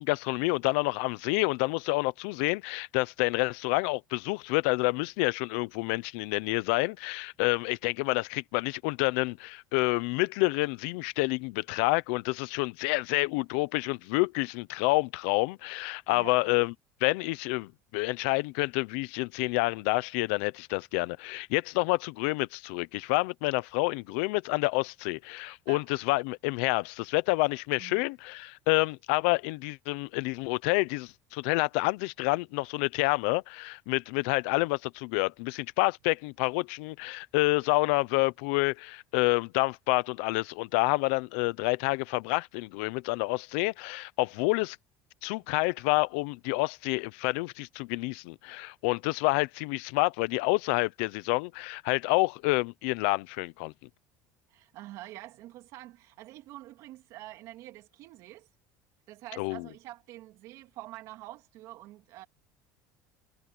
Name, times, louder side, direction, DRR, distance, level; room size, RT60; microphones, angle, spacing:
voice 1, 0.0-16.7 17.0-44.8 45.2-53.7 59.4-59.7, left 24 dB, 80° left, 0.8 m, -28 dB
voice 2, 16.1-16.5 25.7-25.8 27.8-28.0 54.5-58.5 59.1-62.2, right 16 dB, 55° right, 3.1 m, -46 dB
cardioid pair, 150°, 6 cm